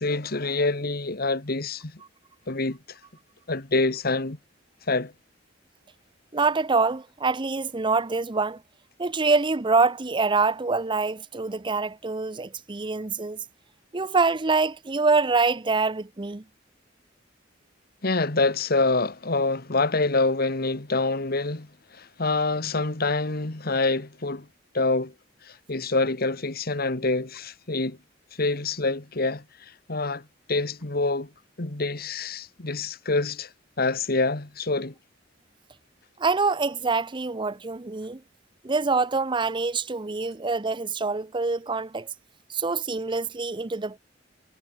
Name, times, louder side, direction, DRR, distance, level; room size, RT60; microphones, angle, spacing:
voice 1, 0.0-2.0 2.5-2.8 3.5-4.4 4.9-5.1 18.0-24.5 24.7-25.1 25.4-28.0 28.4-31.3 31.6-33.5 33.8-34.9, left 3 dB, 55° left, 1.8 m, -26 dB
voice 2, 6.3-8.6 9.0-13.4 13.9-16.4 36.2-38.2 38.6-42.1 42.5-44.0, right 4 dB, 25° right, 0.7 m, -25 dB
head